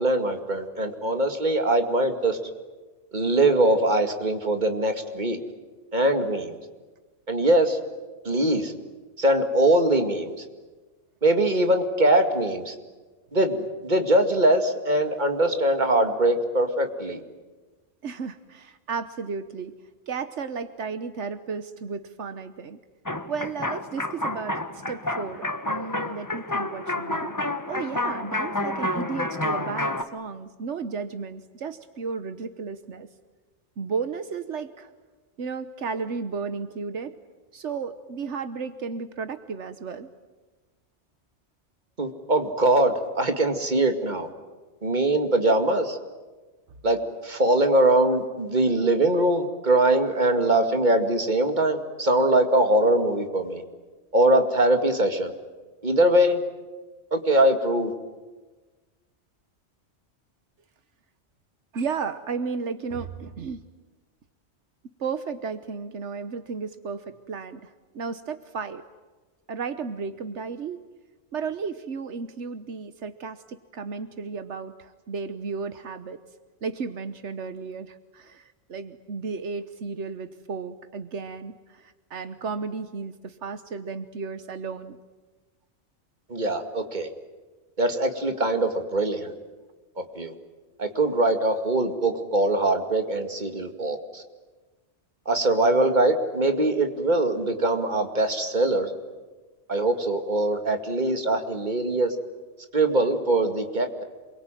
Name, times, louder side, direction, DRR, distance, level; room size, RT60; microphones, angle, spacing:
voice 1, 0.0-2.4 3.1-5.4 5.9-6.6 7.3-7.8 8.2-8.7 9.2-10.3 11.2-12.7 13.3-17.2 42.0-44.3 44.8-46.0 46.8-53.6 54.1-55.3 55.8-56.4 57.1-57.9 86.3-87.1 87.8-89.3 90.0-90.3 90.8-94.2 95.3-98.9 99.7-102.2 102.7-104.0, right 1 dB, 40° right, 6 dB, 2.4 m, -22 dB
voice 2, 18.0-19.7 20.1-22.8 23.3-27.3 27.7-33.1 33.8-34.9 35.4-37.1 37.5-40.1 61.7-63.6 65.0-68.8 69.5-70.8 71.3-76.2 76.6-85.0, right 5 dB, 85° right, 11 dB, 1.4 m, -34 dB
sound 1, 23.1-30.0, left 1 dB, 15° left, 1.2 m, -29 dB
28.0 x 22.5 x 9.1 m, 1.3 s
omnidirectional pair, 1.2 m